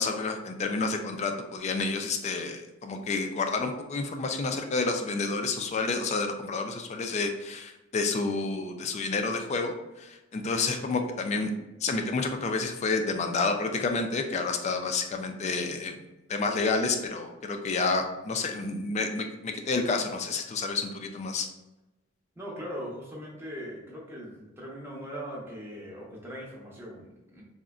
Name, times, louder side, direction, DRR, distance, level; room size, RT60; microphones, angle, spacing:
voice 1, 0.0-11.5 11.8-16.0 16.3-21.5, left 3 dB, 35° left, 5 dB, 0.3 m, -29 dB
voice 2, 22.4-27.4, equal, 10° right, -4 dB, 0.7 m, -40 dB
3.7 x 2.1 x 2.3 m, 1.0 s
head